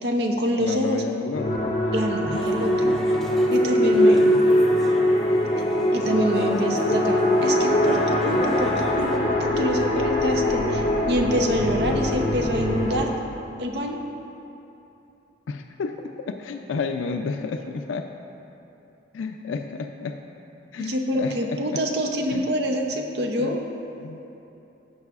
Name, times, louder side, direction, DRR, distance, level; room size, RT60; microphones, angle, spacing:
voice 1, 0.0-1.0 1.9-3.2 3.5-4.2 5.6-5.7 5.9-13.2 13.6-14.0 20.8-23.6, equal, 60° right, 3 dB, 0.7 m, -26 dB
voice 2, 0.6-1.8 3.8-4.4 15.5-15.9 16.3-18.0 19.1-20.2 20.7-21.8 22.3-22.5 23.4-23.6 23.9-24.2, left 4 dB, 90° left, 5 dB, 0.4 m, -31 dB
sound 1, 1.3-13.0, left 1 dB, 50° left, 1.4 m, -22 dB
sound 2, 2.3-9.2, equal, ahead, 0.4 m, -37 dB
15.0 x 5.5 x 2.4 m, 2.9 s
head